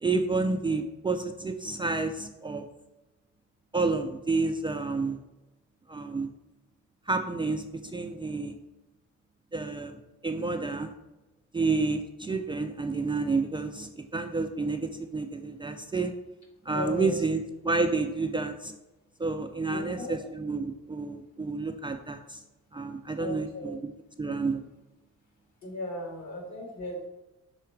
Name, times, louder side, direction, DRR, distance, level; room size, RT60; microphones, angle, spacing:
voice 1, 0.0-2.7 3.7-5.2 5.9-6.3 7.1-8.5 9.5-10.9 11.5-16.1 16.7-18.7 19.2-22.4 22.7-23.9 24.2-24.6, right 3 dB, 15° right, 4 dB, 0.4 m, -30 dB
voice 2, 16.7-17.2 19.7-20.2 23.2-23.7 25.6-27.1, left 1 dB, 65° left, 0 dB, 2.1 m, -36 dB
5.7 x 3.7 x 4.5 m, 1.0 s
cardioid pair, 90°, 30 cm